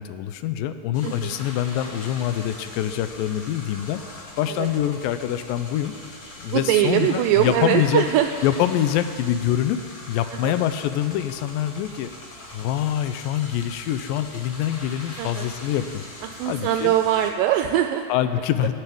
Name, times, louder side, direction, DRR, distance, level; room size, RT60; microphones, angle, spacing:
voice 1, 0.0-5.9 6.4-8.0 8.4-9.8 10.1-12.1 12.5-16.0 16.5-16.9 18.1-18.7, left 11 dB, 80° left, 10 dB, 2.3 m, -25 dB
sound 1, 0.9-17.3, left 2 dB, 65° left, 0.8 m, -41 dB
voice 2, 1.0-1.4 4.5-4.7 6.5-8.3 10.3-10.5 15.2-15.5 16.2-18.0, right 12 dB, 80° right, 6 dB, 2.1 m, -22 dB
17.5 x 6.5 x 8.6 m, 2.2 s
omnidirectional pair, 4.1 m